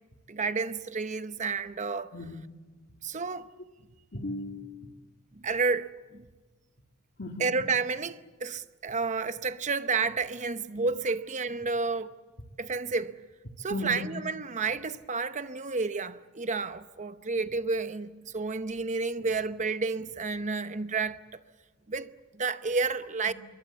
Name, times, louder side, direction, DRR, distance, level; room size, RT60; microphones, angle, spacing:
voice 1, 0.3-2.1 3.0-3.5 5.4-6.3 7.4-12.1 12.6-13.2 13.6-21.2 21.9-23.3, right 4 dB, 35° right, 0.8 m, -31 dB
voice 2, 2.1-2.5 4.1-5.0 7.2-7.5 13.7-14.0 23.3-23.4, left 1 dB, 50° left, 2.4 m, -36 dB
26.0 x 23.0 x 7.4 m
head